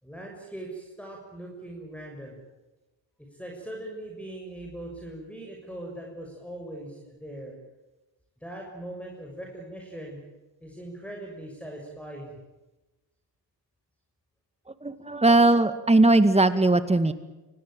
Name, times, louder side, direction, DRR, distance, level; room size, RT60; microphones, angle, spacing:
voice 1, 0.0-2.4 3.2-7.6 8.4-10.2 10.6-12.4, right 1 dB, 5° left, 0 dB, 6.7 m, -40 dB
voice 2, 14.8-17.1, right 2 dB, 15° right, 11 dB, 2.1 m, -19 dB
25.0 x 18.0 x 9.1 m, 1.1 s
cardioid pair, 70°, 42 cm